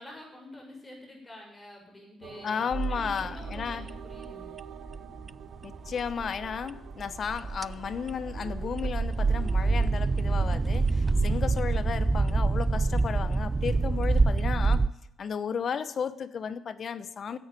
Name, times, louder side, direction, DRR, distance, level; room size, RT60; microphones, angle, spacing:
voice 1, 0.0-2.6 2.9-4.6, left 1 dB, 15° left, 0 dB, 6.2 m, -47 dB
sound 1, 2.2-12.6, right 8 dB, 75° right, 1.3 m, -50 dB
voice 2, 2.4-3.9 5.6-14.8 15.2-17.4, left 7 dB, 50° left, 13 dB, 1.0 m, -34 dB
sound 2, 2.7-14.9, right 3 dB, 25° right, 0.4 m, -27 dB
11.0 x 8.1 x 9.0 m, 0.82 s
cardioid pair, 90°, 0 cm